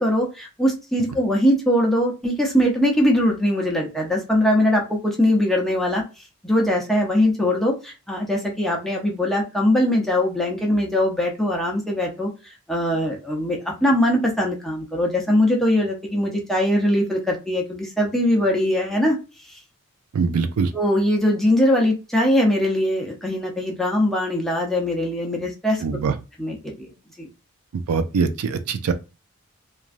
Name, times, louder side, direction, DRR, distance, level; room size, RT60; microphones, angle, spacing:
voice 1, 0.0-6.0 6.4-12.3 12.7-19.2 20.7-25.8 26.4-26.9 27.2-27.3, left 1 dB, ahead, 0.6 m, -21 dB
voice 2, 20.1-20.7 25.8-26.1 27.7-28.9, right 5 dB, 80° right, 0.4 m, -23 dB
3.0 x 2.4 x 2.5 m
head